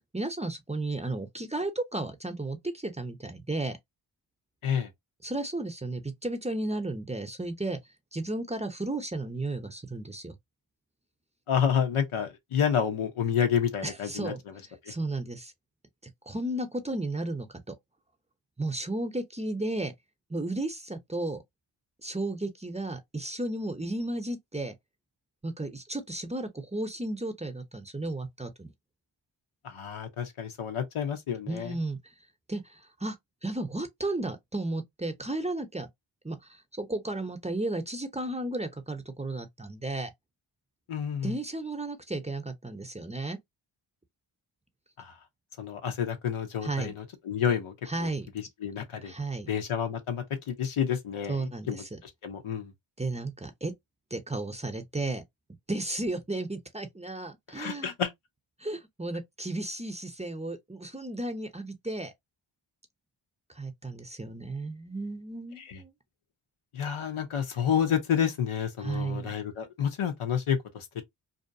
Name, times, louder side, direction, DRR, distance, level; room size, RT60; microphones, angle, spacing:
voice 1, 0.1-3.8 5.2-7.8 8.1-10.4 13.8-14.4 14.9-15.5 16.3-17.7 18.6-19.9 20.3-21.4 22.0-24.7 25.4-28.7 31.5-32.0 32.5-33.2 33.4-35.9 36.2-40.1 41.2-43.4 46.6-46.9 47.9-48.3 49.0-49.5 51.3-52.0 53.0-53.7 54.1-55.2 55.7-57.9 58.6-62.1 63.5-65.9 68.8-69.3, right 2 dB, 15° right, 0.7 m, -34 dB
voice 2, 11.5-14.3 29.6-31.7 40.9-41.3 45.0-45.1 45.6-47.7 48.0-48.1 48.6-49.1 49.5-52.7 57.5-58.1 65.6-65.8 66.7-71.0, left 8 dB, 85° left, 0.8 m, -29 dB
2.7 x 2.2 x 2.6 m
cardioid pair, 40°, 49 cm